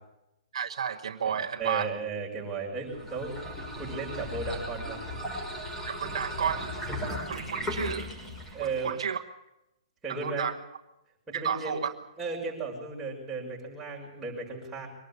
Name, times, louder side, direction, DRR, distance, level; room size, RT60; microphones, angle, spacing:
voice 1, 0.5-1.9 5.9-6.8 7.3-8.1 8.6-9.2 10.1-10.6 11.3-11.9, right 7 dB, 70° right, 6 dB, 1.2 m, -32 dB
voice 2, 1.2-3.3 3.8-5.0 8.5-8.9 10.0-10.5 11.3-11.8 12.2-14.9, right 4 dB, 10° right, -3 dB, 6.5 m, -35 dB
sound 1, 2.8-8.9, equal, 10° left, 5.7 m, -36 dB
23.5 x 12.5 x 9.9 m, 0.91 s
hypercardioid pair, 145°, 3 cm